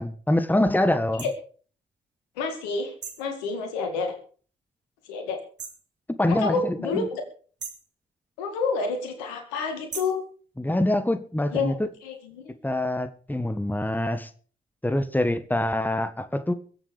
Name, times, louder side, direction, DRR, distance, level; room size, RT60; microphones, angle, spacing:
voice 1, 0.0-1.2 6.2-7.1 10.6-11.7 12.6-14.3 14.8-16.5, left 1 dB, 10° left, 1.6 m, -25 dB
sound 1, 1.2-1.3 3.0-3.3 5.6-5.9 7.6-7.9 9.9-10.2, right 6 dB, 55° right, 3.4 m, -38 dB
voice 2, 2.4-4.1 5.1-5.4 6.3-7.2 8.4-10.2 11.5-11.7 12.0-12.5, left 4 dB, 90° left, 2.1 m, -29 dB
22.0 x 7.5 x 5.2 m
hypercardioid pair, 45°, 21 cm